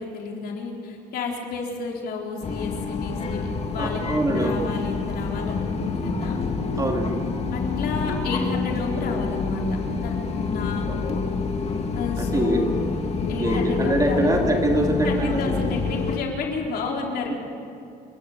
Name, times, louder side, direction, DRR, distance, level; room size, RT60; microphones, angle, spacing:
voice 1, 0.0-3.4 3.7-6.4 7.5-9.6 10.0-11.2 11.9-12.7 13.3-14.4 15.0-17.3, left 4 dB, 70° left, 0 dB, 4.2 m, -31 dB
sound 1, 2.4-16.2, left 4 dB, 35° left, 2.2 m, -27 dB
voice 2, 3.8-4.6 6.8-7.2 10.9-11.1 12.2-12.6 13.4-15.5, right 1 dB, 20° right, 2 dB, 2.6 m, -24 dB
28.5 x 12.0 x 8.1 m, 2.7 s
cardioid pair, 110°, 17 cm